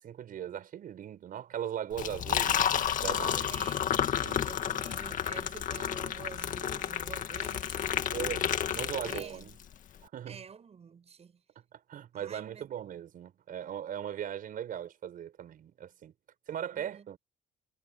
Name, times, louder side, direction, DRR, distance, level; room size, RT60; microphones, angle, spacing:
voice 1, 0.0-3.5 4.2-4.5 8.1-9.5 10.0-10.4 11.6-16.1 16.5-17.2, right 10 dB, 55° right, 5.3 m, -39 dB
Liquid, 1.9-9.6, left 9 dB, 50° left, 1.9 m, -31 dB
voice 2, 3.1-4.0 4.5-8.0 9.0-9.4 10.3-11.4 12.1-12.7 16.5-17.1, right 6 dB, 40° right, 7.3 m, -48 dB
cardioid pair, 110°, 17 cm